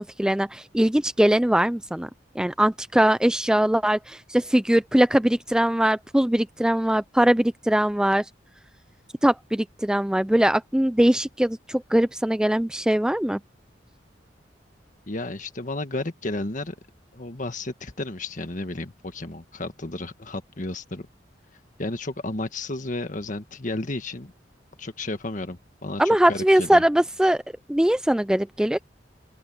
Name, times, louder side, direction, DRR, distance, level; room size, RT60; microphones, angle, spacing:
voice 1, 0.0-2.1 2.4-8.3 9.2-13.4 26.0-27.4 27.7-28.8, right 1 dB, 5° right, 0.4 m, -21 dB
voice 2, 15.1-16.7 17.1-21.1 21.8-24.3 24.8-26.8, left 2 dB, 45° left, 1.6 m, -32 dB
open air
head